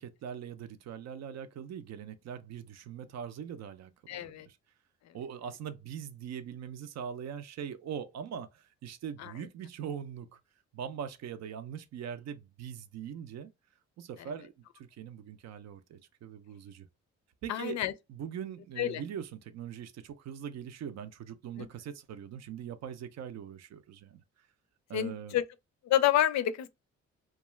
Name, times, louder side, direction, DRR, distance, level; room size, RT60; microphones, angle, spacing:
voice 1, 0.0-4.6 5.1-10.4 10.7-13.5 14.0-16.9 17.4-17.8 18.1-24.2 24.9-25.4, right 8 dB, 60° right, 0.5 m, -42 dB
voice 2, 4.1-4.5 9.2-9.3 17.5-17.9 18.8-19.0 21.6-21.7 24.9-25.4 25.8-26.7, left 12 dB, 65° left, 0.4 m, -28 dB
2.3 x 2.3 x 3.0 m
cardioid pair, 90°, 30 cm